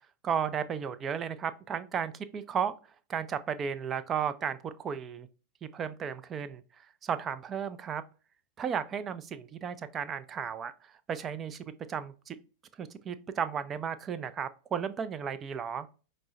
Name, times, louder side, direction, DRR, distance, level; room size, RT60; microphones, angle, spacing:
voice 1, 0.2-2.7 3.1-5.3 5.6-8.0 8.6-11.6 11.9-12.4 12.8-15.9, right 7 dB, 25° right, 13 dB, 0.3 m, -34 dB
5.2 x 2.0 x 2.5 m, 0.35 s
figure-of-eight pair, 90°, 0 cm